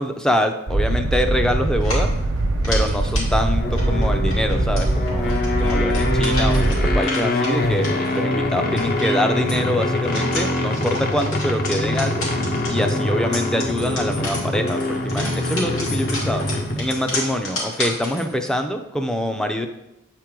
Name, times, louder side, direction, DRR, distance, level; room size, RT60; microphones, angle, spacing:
voice 1, 0.0-2.1 2.6-12.3 12.7-16.5 16.8-19.7, equal, 5° left, 6 dB, 0.4 m, -25 dB
sound 1, 0.7-7.0, right 1 dB, 75° right, 0.8 m, -22 dB
sound 2, 1.8-18.5, left 2 dB, 75° left, 2.3 m, -32 dB
sound 3, 3.6-17.0, left 1 dB, 45° left, 0.7 m, -24 dB
7.9 x 4.5 x 3.7 m, 0.91 s
head